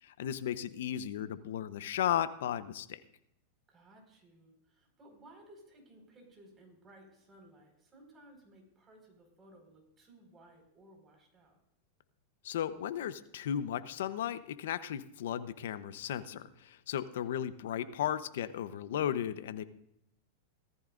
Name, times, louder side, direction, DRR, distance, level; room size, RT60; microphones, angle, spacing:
voice 1, 0.0-3.0 12.4-19.6, left 10 dB, 75° left, 13 dB, 0.9 m, -35 dB
voice 2, 3.7-11.6 19.5-19.7, right 1 dB, 20° right, 1 dB, 5.2 m, -59 dB
18.5 x 14.0 x 2.6 m, 0.77 s
hypercardioid pair, 125°, 0 cm